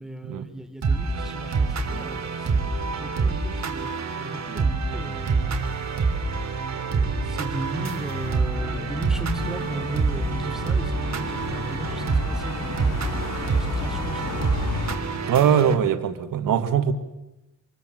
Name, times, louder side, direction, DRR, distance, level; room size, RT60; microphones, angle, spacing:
voice 1, 0.0-5.7 6.8-14.8, right 1 dB, ahead, 3.2 m, -37 dB
sound 1, 0.8-15.7, right 4 dB, 55° right, 3.5 m, -26 dB
sound 2, 8.2-15.0, left 5 dB, 75° left, 3.3 m, -34 dB
voice 2, 15.3-16.9, right 8 dB, 90° right, 1.8 m, -21 dB
26.5 x 21.0 x 7.8 m
cardioid pair, 90°, 32 cm